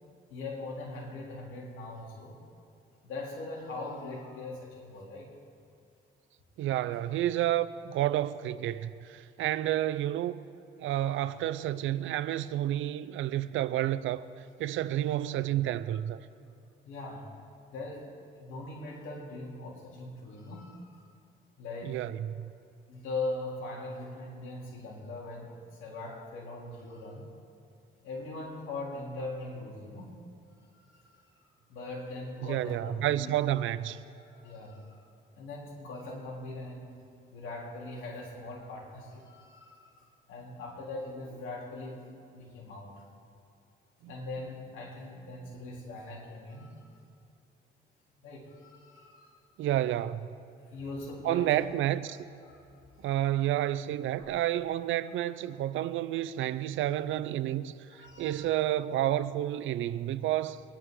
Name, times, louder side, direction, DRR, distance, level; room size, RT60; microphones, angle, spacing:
voice 1, 0.3-2.4 3.0-5.4 16.8-17.3 17.7-21.0 21.6-22.0 22.9-27.3 28.0-30.1 30.6-31.3 31.7-33.4 34.2-35.0 35.3-36.9 37.3-42.1 42.3-43.0 44.1-46.9 48.2-49.4 50.6-51.7 52.4-52.6 52.9-53.0 54.2-54.4 57.9-58.4, left 2 dB, 80° left, 3.3 m, -41 dB
voice 2, 6.6-10.4 10.8-14.2 14.6-16.2 21.8-22.5 32.4-34.0 44.0-44.1 49.6-50.4 51.2-52.2 53.0-60.6, right 13 dB, 80° right, 0.6 m, -30 dB
22.5 x 11.0 x 3.8 m
cardioid pair, 90°, 20 cm